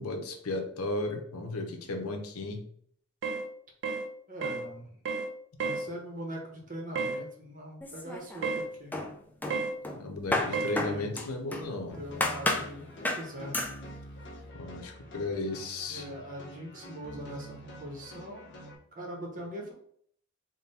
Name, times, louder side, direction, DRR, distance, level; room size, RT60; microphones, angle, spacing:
voice 1, 0.0-2.7 9.9-12.0 14.5-16.0, left 2 dB, 85° left, 4 dB, 0.7 m, -35 dB
sound 1, 3.2-3.5 3.8-4.1 4.4-4.7 5.1-5.3 5.6-5.9 7.0-7.2 8.4-8.7 9.5-9.8 10.5-10.8, right 4 dB, 55° right, 0.4 m, -31 dB
voice 2, 4.3-4.9 5.6-9.0 10.5-11.1 12.0-13.6 15.9-18.5 19.0-19.7, equal, 35° right, 1 dB, 0.8 m, -41 dB
sound 2, 7.8-8.6 8.9-11.7 12.2-12.7 13.0-13.3 13.5-13.8, left 2 dB, 10° left, 0.4 m, -32 dB
sound 3, 11.9-18.7, equal, 50° left, 0.8 m, -47 dB
3.7 x 2.2 x 4.0 m, 0.64 s
head